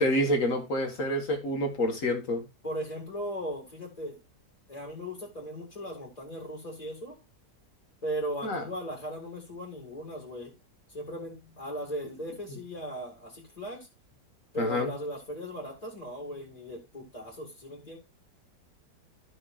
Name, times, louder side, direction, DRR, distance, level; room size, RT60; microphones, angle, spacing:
voice 1, 0.0-2.5 8.4-8.6 14.6-14.9, equal, 50° left, 4 dB, 1.9 m, -27 dB
voice 2, 2.6-4.2 4.7-7.2 8.0-10.5 10.9-13.9 14.5-18.0, equal, 20° left, -1 dB, 2.2 m, -37 dB
13.5 x 6.3 x 2.5 m, 0.26 s
omnidirectional pair, 1.8 m